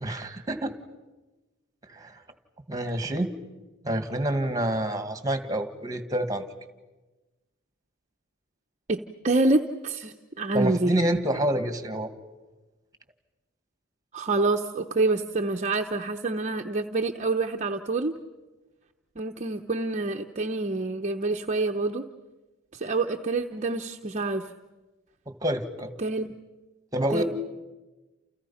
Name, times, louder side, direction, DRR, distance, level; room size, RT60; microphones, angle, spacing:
voice 1, 0.0-0.7 1.9-2.2 2.7-3.3 3.8-6.4 10.5-12.1 25.3-25.9 26.9-27.2, right 1 dB, 15° right, 9 dB, 1.9 m, -27 dB
voice 2, 8.9-11.0 14.1-18.1 19.2-22.0 22.7-24.5 26.0-26.3 27.1-27.2, right 2 dB, 35° right, 4 dB, 0.9 m, -27 dB
30.0 x 29.5 x 5.7 m, 1.1 s
head